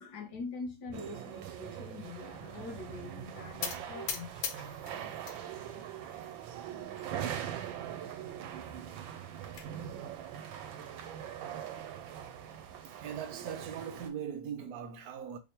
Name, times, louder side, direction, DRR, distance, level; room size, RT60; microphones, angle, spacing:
voice 1, 0.0-4.3, left 3 dB, 65° left, 1.3 m, -43 dB
sound 1, 0.9-14.1, right 9 dB, 90° right, 1.4 m, -42 dB
sound 2, 3.6-5.4 5.8-6.4 7.0-7.1 7.4-7.5 7.8-7.9 9.0-9.7, left 7 dB, 85° left, 1.4 m, -40 dB
voice 2, 12.8-15.4, right 8 dB, 70° right, 0.9 m, -40 dB
3.4 x 2.0 x 4.3 m
omnidirectional pair, 2.1 m